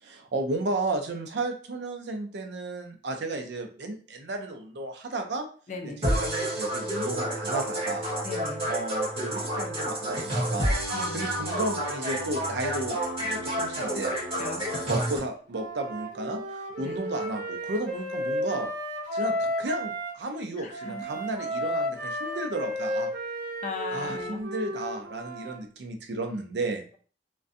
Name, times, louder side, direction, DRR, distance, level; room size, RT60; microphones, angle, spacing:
voice 1, 0.0-5.5 5.8-8.1 8.7-10.8 11.1-14.1 14.9-18.7 19.1-23.1 23.9-26.8, right 2 dB, 70° right, 4 dB, 0.5 m, -33 dB
voice 2, 5.7-6.0 8.2-8.6 10.9-11.2 14.1-14.6 16.8-17.0 20.6-21.0 23.6-24.4, left 3 dB, 40° left, 3 dB, 0.5 m, -37 dB
sound 1, 6.0-15.2, right 1 dB, 30° right, 1.1 m, -29 dB
Wind instrument woodwind instrument, 15.5-20.1 20.7-25.6, equal, 50° right, 0.8 m, -33 dB
2.5 x 2.2 x 2.5 m, 0.41 s
head